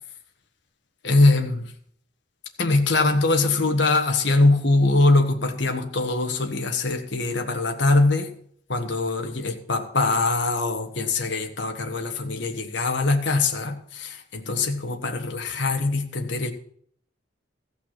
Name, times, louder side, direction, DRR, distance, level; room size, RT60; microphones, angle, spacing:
voice 1, 1.0-1.7 2.6-8.3 8.7-16.5, left 2 dB, 65° left, 4 dB, 1.4 m, -22 dB
15.0 x 5.8 x 7.5 m, 0.63 s
head